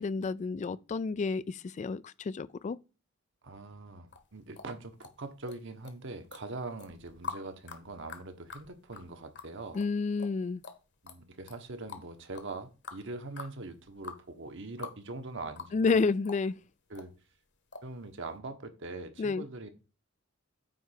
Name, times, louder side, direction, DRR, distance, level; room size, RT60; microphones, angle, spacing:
voice 1, 0.0-2.8 9.7-10.6 15.7-16.6 19.2-19.4, left 4 dB, 35° left, 0.3 m, -30 dB
voice 2, 3.4-9.8 11.0-16.1 16.9-17.1 17.8-19.7, right 2 dB, 60° right, 1.2 m, -42 dB
sound 1, 4.1-5.6 5.8-6.4 6.8-15.0 15.3-16.0 16.3-17.1 17.7-17.9 18.3-18.4, left 5 dB, 60° left, 1.4 m, -45 dB
9.3 x 3.3 x 6.4 m
head